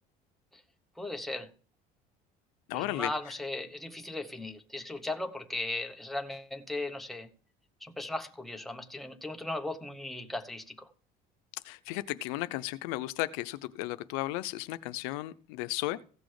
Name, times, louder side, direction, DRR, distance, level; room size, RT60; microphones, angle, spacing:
voice 1, 1.0-1.5 2.7-7.3 7.8-10.9, left 2 dB, ahead, 1.0 m, -37 dB
voice 2, 2.7-3.1 11.6-16.0, left 18 dB, 90° left, 0.6 m, -34 dB
15.5 x 6.3 x 4.8 m
cardioid pair, 145°, 17 cm